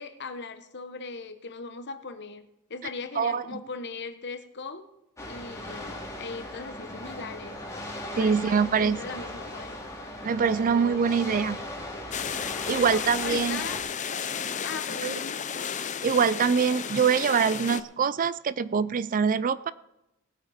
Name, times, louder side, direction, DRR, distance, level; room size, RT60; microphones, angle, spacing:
voice 1, 0.0-4.8 5.2-7.6 8.2-9.8 10.7-11.1 12.5-13.8 14.6-15.4, left 4 dB, 55° left, 10 dB, 1.0 m, -39 dB
sound 1, 5.2-13.8, left 1 dB, 15° left, 2.7 m, -38 dB
voice 2, 8.2-9.0 10.2-11.6 12.7-13.6 15.0-15.1 16.0-19.7, right 6 dB, 40° right, 16 dB, 0.4 m, -24 dB
sound 2, 12.1-17.8, left 7 dB, 35° left, 0.6 m, -33 dB
19.5 x 8.7 x 4.2 m, 0.91 s
head